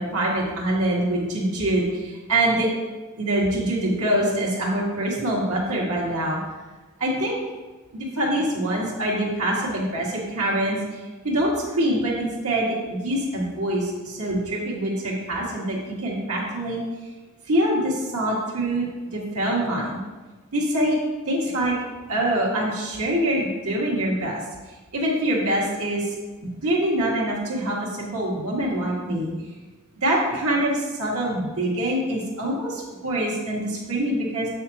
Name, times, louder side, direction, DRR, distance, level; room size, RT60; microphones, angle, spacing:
voice 1, 0.0-2.7 3.2-6.4 7.0-7.4 7.9-16.8 17.5-18.9 19.1-20.0 20.5-21.0 21.2-21.8 22.1-24.4 24.9-26.1 26.4-29.3 30.0-34.5, right 1 dB, 80° right, -4 dB, 1.9 m, -24 dB
7.5 x 6.3 x 2.8 m, 1.3 s
head